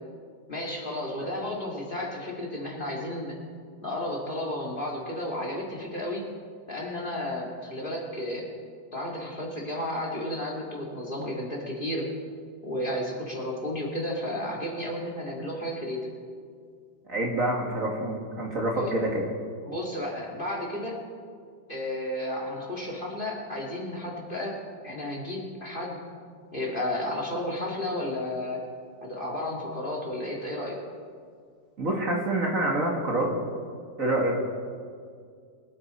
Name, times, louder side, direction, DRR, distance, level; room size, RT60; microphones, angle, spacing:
voice 1, 0.5-3.3 3.8-6.3 6.7-8.5 8.9-12.1 12.6-16.1 18.7-18.9 19.6-21.0 21.7-24.6 24.8-26.0 26.5-28.6 29.0-30.8, left 1 dB, 25° left, -1 dB, 2.2 m, -32 dB
voice 2, 17.1-19.3 31.8-33.3 34.0-34.4, right 1 dB, 45° right, -1 dB, 2.1 m, -27 dB
23.5 x 9.2 x 4.3 m, 2.1 s
omnidirectional pair, 2.1 m